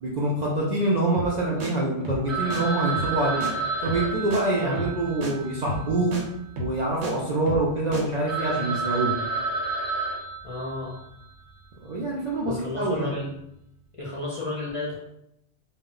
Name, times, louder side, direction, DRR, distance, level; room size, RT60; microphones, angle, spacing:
voice 1, 0.0-3.4 3.8-6.1 6.6-9.1 11.8-13.1, right 2 dB, 55° right, -4 dB, 0.5 m, -25 dB
sound 1, 1.1-1.3 1.6-1.7 2.0-2.2 2.5-2.6 2.9-3.2 3.4-3.5 3.8-4.1 4.3-4.4 4.8-5.0 5.2-5.3 5.7-5.9 6.1-6.2 6.6-7.1 7.5-7.7 7.9-8.0, equal, 80° right, 1.0 m, -32 dB
Telephone, 2.3-6.6 6.9-7.0 7.5-7.6 8.0-8.1 8.3-11.2, right 4 dB, 15° right, 0.8 m, -31 dB
voice 2, 4.5-4.9 10.4-11.0 12.4-13.3 13.9-15.0, left 2 dB, 40° left, -6 dB, 0.5 m, -32 dB
2.2 x 2.1 x 3.7 m, 0.79 s
omnidirectional pair, 1.1 m